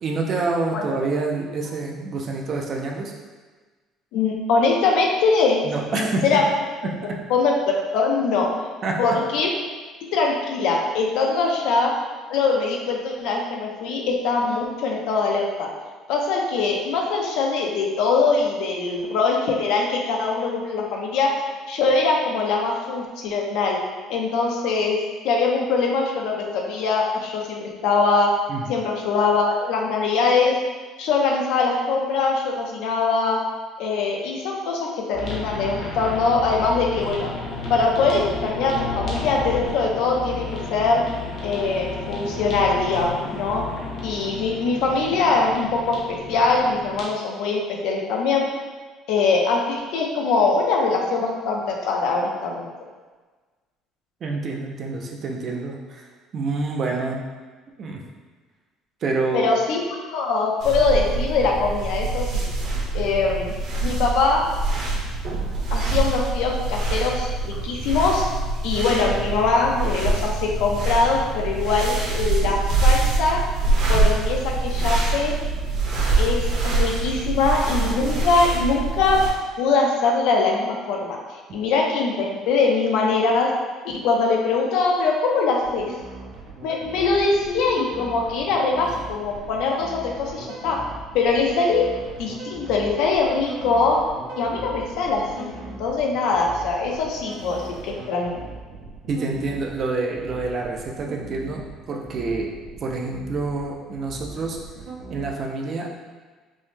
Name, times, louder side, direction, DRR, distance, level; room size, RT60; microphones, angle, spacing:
voice 1, 0.0-3.1 5.6-6.4 6.8-7.2 8.8-9.0 28.5-28.7 54.2-57.2 57.8-58.0 59.0-59.5 99.1-101.6 101.9-102.5 102.8-104.6 105.1-105.9, right 3 dB, 30° right, 1 dB, 0.4 m, -27 dB
voice 2, 4.1-5.6 5.9-6.4 7.3-8.5 9.0-9.5 10.1-11.9 12.3-15.7 16.1-21.3 21.7-23.8 24.1-25.0 25.2-28.3 28.7-30.6 31.0-33.4 33.8-37.3 37.7-40.4 40.7-41.0 41.4-43.6 44.0-48.5 49.1-52.7 59.3-62.4 62.9-63.5 63.8-64.4 65.7-68.3 68.6-73.4 73.9-75.3 76.2-79.2 79.6-81.2 81.5-83.5 84.0-85.9 86.6-90.8 91.1-91.9 92.2-94.0 94.4-98.4, left 4 dB, 70° left, 0 dB, 0.6 m, -22 dB
sound 1, 35.1-47.0, left 3 dB, 35° left, 0.8 m, -32 dB
sound 2, 60.6-79.3, right 2 dB, 50° right, 1.0 m, -24 dB
sound 3, 85.6-105.3, right 3 dB, 80° right, 0.9 m, -39 dB
5.3 x 2.1 x 3.2 m, 1.4 s
cardioid pair, 180°, 0 cm